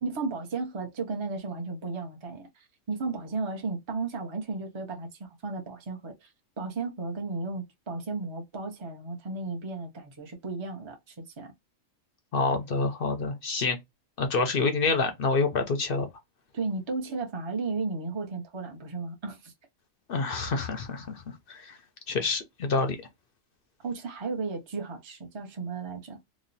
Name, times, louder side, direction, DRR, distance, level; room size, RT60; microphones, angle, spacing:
voice 1, 0.0-11.5 16.5-19.5 23.8-26.2, right 3 dB, 25° right, 0.7 m, -34 dB
voice 2, 12.3-13.8 14.2-16.1 20.1-21.2 21.5-21.8 22.1-23.0, left 4 dB, 55° left, 0.7 m, -27 dB
3.0 x 2.2 x 3.9 m
omnidirectional pair, 1.4 m